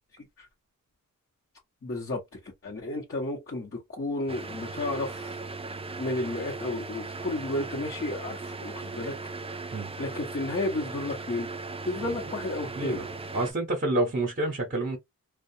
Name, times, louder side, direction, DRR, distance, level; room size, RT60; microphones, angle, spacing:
voice 1, 1.8-5.4 6.0-11.5 11.8-13.0, left 2 dB, 40° left, 1.0 m, -33 dB
sound 1, 4.3-13.5, right 3 dB, 20° right, 0.3 m, -38 dB
voice 2, 12.8-15.0, right 2 dB, 35° right, 0.9 m, -29 dB
2.3 x 2.2 x 2.7 m
wide cardioid pair, 85°, 34 cm